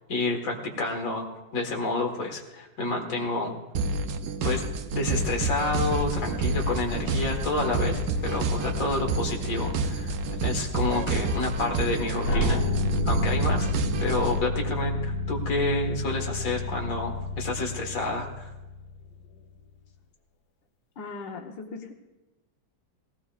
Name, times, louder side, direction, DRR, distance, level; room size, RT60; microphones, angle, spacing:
voice 1, 0.1-1.3 1.5-3.6 4.4-4.6 4.9-10.1 10.4-12.6 13.0-13.7 14.0-18.5, left 2 dB, 50° left, 1 dB, 2.0 m, -29 dB
sound 1, 3.7-14.4, right 3 dB, 80° right, 1.4 m, -29 dB
sound 2, 5.1-12.1, left 1 dB, 20° right, 2.3 m, -37 dB
sound 3, 12.2-19.2, left 2 dB, 65° left, 1.4 m, -30 dB
voice 2, 21.0-21.9, left 4 dB, 85° left, 3 dB, 1.7 m, -38 dB
18.5 x 17.0 x 2.4 m, 1.1 s
omnidirectional pair, 1.9 m